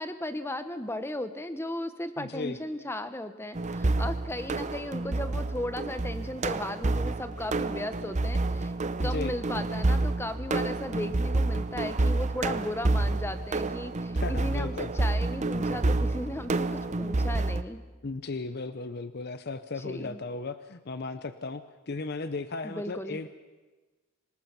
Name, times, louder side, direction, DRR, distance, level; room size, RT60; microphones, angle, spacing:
voice 1, 0.0-8.7 9.0-17.8 19.8-20.2 22.6-23.2, left 1 dB, 10° left, 10 dB, 1.1 m, -36 dB
voice 2, 2.2-2.6 9.0-9.3 14.1-14.9 18.0-23.3, left 3 dB, 50° left, 11 dB, 0.7 m, -36 dB
sound 1, 3.6-17.6, right 2 dB, 35° right, 0.7 m, -29 dB
26.5 x 19.0 x 6.0 m, 1.3 s
head